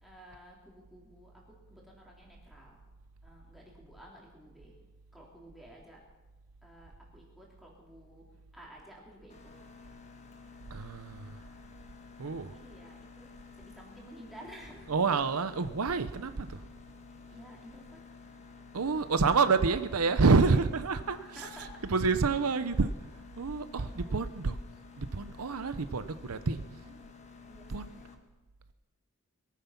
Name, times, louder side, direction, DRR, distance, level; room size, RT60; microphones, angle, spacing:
voice 1, 0.0-2.8 3.2-4.8 5.1-6.0 6.6-8.2 8.5-9.6 12.2-13.3 13.6-14.9 17.3-18.0 20.5-20.6 20.9-21.8 23.8-24.3 26.8-27.1 27.5-28.1, equal, ahead, -3 dB, 3.4 m, -52 dB
Mechanisms, 9.3-28.1, left 6 dB, 30° left, 1.3 m, -53 dB
voice 2, 10.7-11.4 12.2-12.5 14.9-16.6 18.7-22.9 23.4-24.6 25.0-26.6 27.7-28.0, right 4 dB, 90° right, 11 dB, 0.7 m, -28 dB
22.0 x 9.4 x 5.9 m, 1.2 s
head